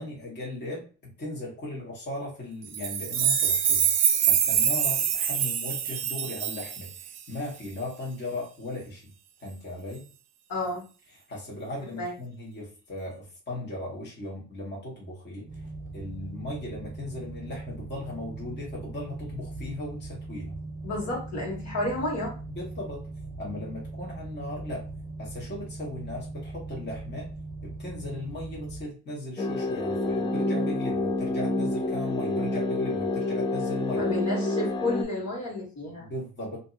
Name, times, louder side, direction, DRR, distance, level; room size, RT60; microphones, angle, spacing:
voice 1, 0.0-9.1 9.4-10.0 11.3-15.5 15.9-20.6 22.5-23.0 23.4-24.8 25.2-27.3 27.6-34.0 36.0-36.6, left 2 dB, 35° left, -4 dB, 1.4 m, -37 dB
sound 1, 2.7-7.2, right 8 dB, 60° right, 0.5 m, -25 dB
voice 2, 10.5-10.8 11.9-12.1 20.8-22.3 34.0-36.1, left 2 dB, 55° left, -4 dB, 1.5 m, -31 dB
sound 2, 15.4-28.8, right 2 dB, 25° right, 0.8 m, -40 dB
sound 3, 29.4-35.0, left 2 dB, 15° left, 0.4 m, -28 dB
2.7 x 2.6 x 2.5 m, 0.36 s
cardioid pair, 90°, 30 cm